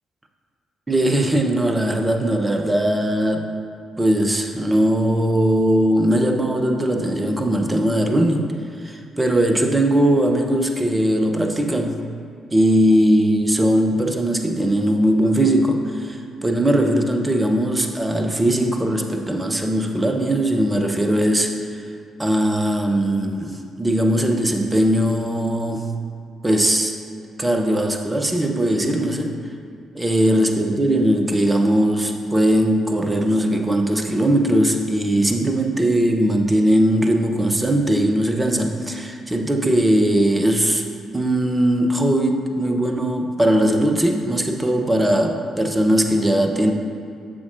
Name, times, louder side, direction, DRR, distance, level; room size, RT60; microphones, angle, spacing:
voice 1, 0.9-3.5 4.0-8.5 8.8-12.0 12.5-21.5 22.2-25.9 26.4-26.9 27.4-29.3 29.9-40.8 41.1-46.7, right 1 dB, 15° right, 4 dB, 0.8 m, -19 dB
9.6 x 7.3 x 2.6 m, 2.5 s
figure-of-eight pair, 40°, 0 cm